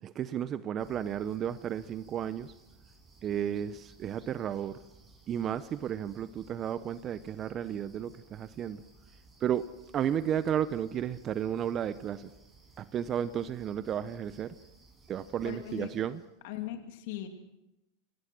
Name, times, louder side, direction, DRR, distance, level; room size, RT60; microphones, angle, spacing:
voice 1, 0.0-2.5 3.2-4.8 5.3-8.8 9.4-12.3 12.8-14.6 15.1-16.2, right 9 dB, 35° right, 0.9 m, -33 dB
sound 1, 0.8-16.3, right 3 dB, 15° right, 6.8 m, -58 dB
voice 2, 15.4-15.9 16.4-17.3, left 13 dB, 65° left, 2.7 m, -39 dB
27.5 x 17.5 x 6.2 m
hypercardioid pair, 105°, 0 cm